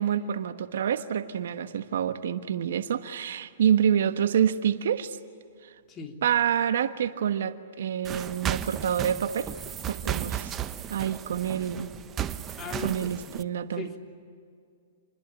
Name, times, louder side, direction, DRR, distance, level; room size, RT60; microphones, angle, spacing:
voice 1, 0.0-5.2 6.2-9.5 9.8-10.6 10.9-11.9 12.8-13.9, right 9 dB, 70° right, 10 dB, 1.3 m, -27 dB
sound 1, 8.0-13.4, right 10 dB, 25° right, 1.0 m, -34 dB
voice 2, 12.5-13.1 13.7-14.0, left 4 dB, 25° left, 3 dB, 3.3 m, -38 dB
27.5 x 21.0 x 9.9 m, 2.3 s
hypercardioid pair, 125°, 0 cm